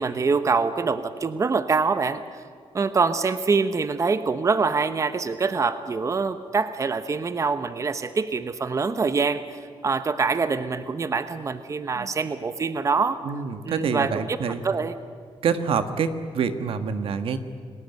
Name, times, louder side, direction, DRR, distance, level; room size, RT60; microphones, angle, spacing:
voice 1, 0.0-2.4 2.7-13.2 13.7-14.4 14.6-14.9, right 4 dB, 35° right, 11 dB, 0.9 m, -25 dB
voice 2, 13.2-14.6 15.4-17.4, right 6 dB, 75° right, 9 dB, 1.6 m, -26 dB
29.0 x 19.0 x 9.5 m, 2.2 s
cardioid pair, 115°, 10 cm